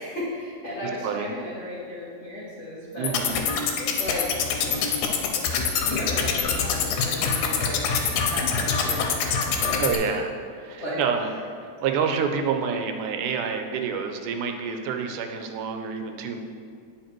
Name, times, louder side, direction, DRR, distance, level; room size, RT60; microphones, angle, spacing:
voice 1, 0.0-3.1 3.9-4.3 5.6-8.0 8.3-9.0 9.6-10.0 10.8-11.0, left 1 dB, 70° left, -9 dB, 0.6 m, -34 dB
voice 2, 0.8-1.3 3.0-3.4 9.8-10.3 10.6-11.3 11.6-16.4, right 6 dB, 85° right, 5 dB, 2.1 m, -28 dB
sound 1, 3.0-10.0, left 6 dB, 90° left, 2.2 m, -25 dB
9.3 x 4.5 x 4.5 m, 2.2 s
omnidirectional pair, 3.5 m